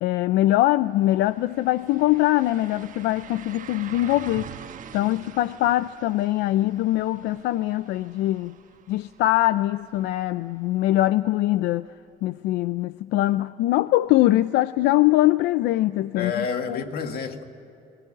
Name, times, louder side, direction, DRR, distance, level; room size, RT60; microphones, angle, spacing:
voice 1, 0.0-4.5 4.9-8.5 8.9-11.9 12.2-16.8, left 15 dB, 85° left, 0.5 m, -22 dB
sound 1, 0.6-0.7 1.0-10.8 11.2-11.3 14.0-14.1, right 8 dB, 50° right, 1.3 m, -45 dB
voice 2, 16.2-17.4, left 6 dB, 65° left, 2.0 m, -29 dB
22.5 x 18.0 x 9.9 m
cardioid pair, 110°, 17 cm